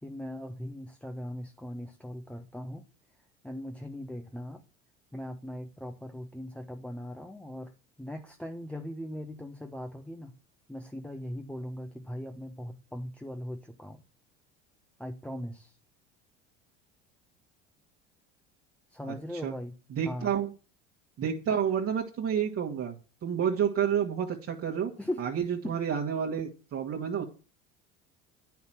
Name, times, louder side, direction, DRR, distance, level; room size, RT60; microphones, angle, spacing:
voice 1, 0.0-2.9 3.4-4.6 5.1-10.3 10.7-14.0 15.0-15.8 18.9-19.8 20.0-20.3 25.0-25.2 25.6-25.7, equal, 5° left, 4 dB, 1.2 m, -39 dB
voice 2, 19.9-20.5 21.2-22.9 23.2-24.9 25.2-27.2, right 8 dB, 45° right, 0 dB, 1.8 m, -29 dB
9.4 x 6.0 x 7.6 m, 0.34 s
hypercardioid pair, 80°, 33 cm